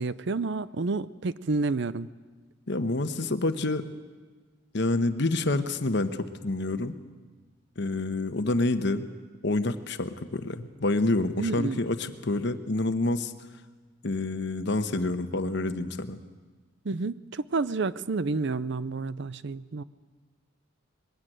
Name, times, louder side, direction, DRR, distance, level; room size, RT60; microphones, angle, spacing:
voice 1, 0.0-2.1 11.4-11.8 16.9-19.8, right 3 dB, 60° right, 16 dB, 0.6 m, -30 dB
voice 2, 2.7-3.9 4.7-7.0 7.8-9.1 9.4-13.3 14.0-16.2, left 2 dB, 60° left, 9 dB, 1.1 m, -28 dB
21.5 x 16.5 x 9.1 m, 1.4 s
head